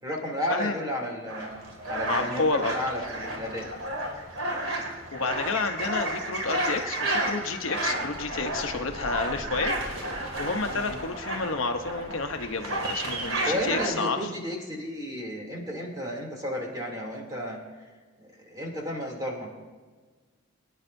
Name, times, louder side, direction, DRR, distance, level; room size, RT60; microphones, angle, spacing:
voice 1, 0.0-1.5 1.9-3.7 10.7-11.0 13.4-17.6 18.2-19.5, equal, 20° right, -1 dB, 2.8 m, -33 dB
sound 1, 1.3-13.9, right 1 dB, 90° right, 2.3 m, -32 dB
voice 2, 2.1-2.7 4.6-4.7 5.1-9.7 10.0-14.2, left 4 dB, 70° left, 6 dB, 0.9 m, -30 dB
23.5 x 10.0 x 2.7 m, 1.4 s
head